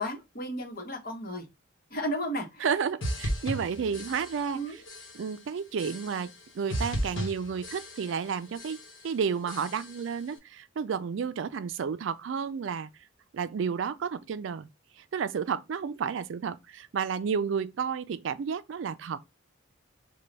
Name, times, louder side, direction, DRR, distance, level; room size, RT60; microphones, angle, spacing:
voice 1, 0.0-1.5 1.9-2.6 4.5-4.8, equal, 45° left, 1.0 m, -33 dB
voice 2, 2.6-4.8 5.1-12.9 13.3-14.7 15.0-19.2, right 6 dB, 65° right, 0.4 m, -31 dB
sound 1, 3.0-4.6 4.9-5.4 5.8-6.4 6.7-8.3 8.5-9.1 9.5-10.1, equal, 70° left, 1.1 m, -36 dB
3.8 x 2.2 x 3.2 m
head